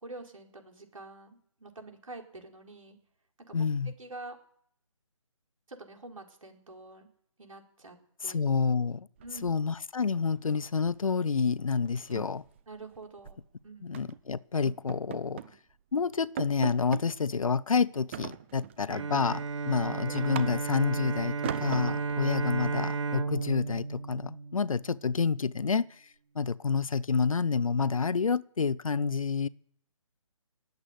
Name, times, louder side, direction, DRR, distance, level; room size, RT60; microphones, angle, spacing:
voice 1, 0.0-3.0 3.5-3.7 4.0-4.4 5.7-7.1 7.4-7.9 8.2-8.4 9.2-9.6 12.7-14.0 20.0-20.1 20.5-20.6, right 2 dB, 75° right, 4.7 m, -47 dB
voice 2, 3.5-3.9 8.2-9.1 9.4-12.4 13.8-15.4 15.9-26.1 26.3-29.5, left 5 dB, 75° left, 0.6 m, -29 dB
sound 1, 9.2-10.0 10.3-10.5 10.9-11.1 11.4-11.5 11.9-13.4 13.9-14.2 14.7-15.6 15.9-16.0 16.4-17.1 18.1-18.9 19.3-20.9 21.4-22.2, right 10 dB, 20° right, 0.6 m, -40 dB
Bowed string instrument, 18.9-25.1, right 4 dB, 60° right, 0.8 m, -33 dB
19.5 x 8.2 x 8.3 m
figure-of-eight pair, 150°, 17 cm